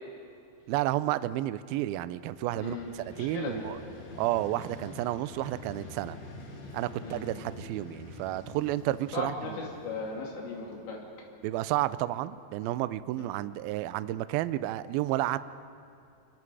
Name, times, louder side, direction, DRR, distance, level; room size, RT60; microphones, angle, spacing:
voice 1, 0.7-3.8 4.2-6.2 6.7-9.6 11.4-15.4, right 15 dB, 90° right, 14 dB, 2.1 m, -31 dB
Vehicle, 2.2-11.2, left 3 dB, 65° left, 4.6 m, -47 dB
voice 2, 2.5-3.6 7.0-7.2 9.1-11.0 13.2-13.3, left 4 dB, 85° left, -2 dB, 4.9 m, -37 dB
28.5 x 22.0 x 4.9 m, 2.5 s
omnidirectional pair, 5.0 m